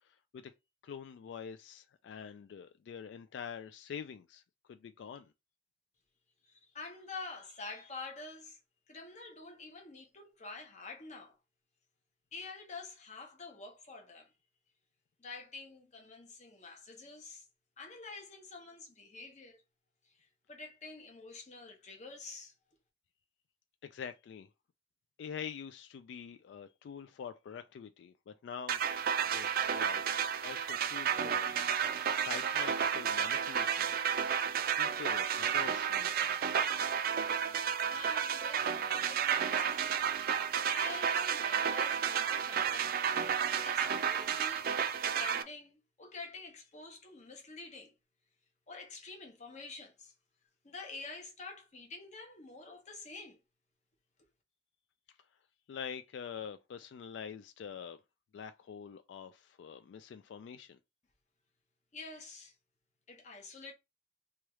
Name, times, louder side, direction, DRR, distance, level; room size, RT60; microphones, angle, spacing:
voice 1, 0.8-4.4 4.7-5.3 23.8-24.5 25.2-28.8 29.2-30.0 30.4-34.0 34.8-36.4 55.7-58.0 58.3-60.8, left 7 dB, 85° left, 0.3 m, -45 dB
voice 2, 6.4-8.6 8.9-11.3 12.3-14.3 15.2-17.5 17.8-19.6 20.1-22.5 37.9-40.1 40.7-43.0 43.6-44.7 45.0-48.0 48.7-50.1 50.6-53.4 61.9-62.5 63.1-63.7, left 3 dB, 40° left, 0.8 m, -48 dB
sound 1, 28.7-45.4, right 8 dB, 55° right, 0.3 m, -32 dB
3.0 x 2.3 x 3.0 m
head